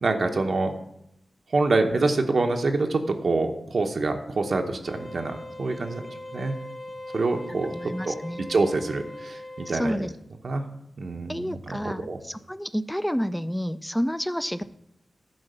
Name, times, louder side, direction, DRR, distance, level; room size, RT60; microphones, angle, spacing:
voice 1, 0.0-0.8 1.5-6.1 6.3-6.6 7.1-8.1 8.5-10.1 10.4-10.6 11.0-12.2, right 3 dB, 65° right, 4 dB, 0.9 m, -26 dB
sound 1, 4.8-9.9, left 1 dB, 45° left, 2.0 m, -40 dB
voice 2, 7.7-8.4 9.7-10.1 11.3-14.6, equal, 5° left, 13 dB, 0.4 m, -29 dB
10.5 x 4.0 x 6.7 m, 0.79 s
wide cardioid pair, 75°, 0 cm